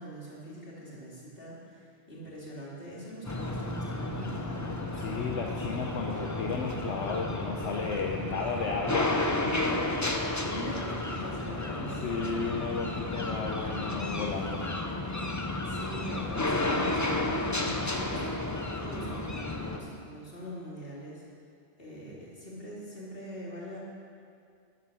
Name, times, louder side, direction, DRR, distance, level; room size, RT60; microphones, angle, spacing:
voice 1, 0.0-4.7 9.5-12.2 15.6-18.3 18.8-21.2 21.8-23.8, equal, 55° left, -6 dB, 3.1 m, -42 dB
sound 1, 3.2-19.8, left 2 dB, 20° left, 0.7 m, -32 dB
voice 2, 5.0-9.7 11.8-14.6, left 4 dB, 80° left, 0 dB, 1.2 m, -33 dB
12.5 x 9.4 x 6.3 m, 2.4 s
omnidirectional pair, 1.2 m